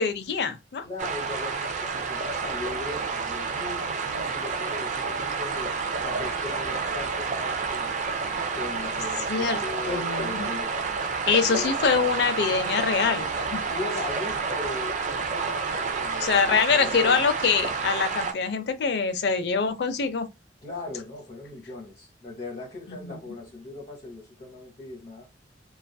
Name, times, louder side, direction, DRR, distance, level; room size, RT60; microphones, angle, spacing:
voice 1, 0.0-0.8 9.3-9.6 9.9-10.5 11.3-13.3 13.5-13.6 16.2-20.3 22.9-23.2, left 5 dB, 60° left, 0.4 m, -24 dB
voice 2, 0.8-5.7 6.0-7.9 8.5-10.9 11.5-11.7 13.7-17.2 20.6-25.3, left 2 dB, 40° left, 1.0 m, -38 dB
sound 1, 1.0-18.3, right 5 dB, 40° right, 0.3 m, -29 dB
2.5 x 2.4 x 2.2 m
head